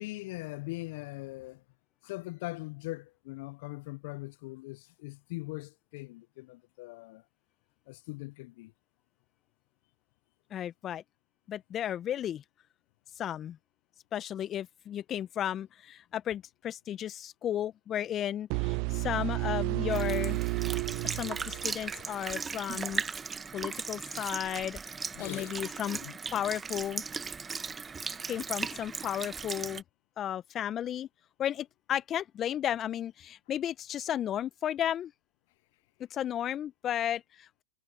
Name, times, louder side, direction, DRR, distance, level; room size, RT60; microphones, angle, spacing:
voice 1, 0.0-1.6 2.0-7.2 7.9-8.7 25.2-25.6 26.0-26.1, left 22 dB, 50° left, 1.2 m, -41 dB
voice 2, 10.5-11.0 11.5-12.4 13.2-13.6 14.1-20.4 21.0-23.0 23.5-24.8 25.2-26.0 26.3-27.0 28.3-29.8 30.2-31.1 31.4-35.1 36.1-37.6, left 10 dB, 25° left, 1.4 m, -34 dB
sound 1, 18.5-22.4, right 32 dB, 45° right, 0.5 m, -32 dB
Sink (filling or washing) / Liquid, 19.9-29.8, right 5 dB, 15° right, 1.8 m, -37 dB
hypercardioid pair, 105°, 0 cm